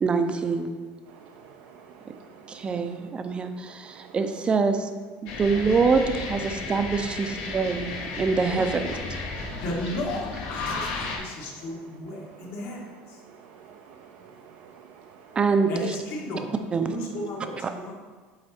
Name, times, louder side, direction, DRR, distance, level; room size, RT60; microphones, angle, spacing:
voice 1, 0.0-0.8 2.5-4.9 5.2-9.0 15.4-16.0 16.7-16.9 17.6-17.7, right 4 dB, 20° right, 0.5 m, -25 dB
voice 2, 1.1-4.5 5.3-5.4 7.3-8.2 9.1-9.6 11.0-15.9 17.1-17.2 17.9-18.0, right 8 dB, 75° right, 0.5 m, -48 dB
sound 1, 5.3-11.2, left 3 dB, 70° left, 1.3 m, -33 dB
voice 3, 9.6-12.8 13.1-13.2 15.7-16.5 16.8-17.9, left 1 dB, 55° left, 1.6 m, -34 dB
7.8 x 4.0 x 4.3 m
cardioid pair, 140°, 5 cm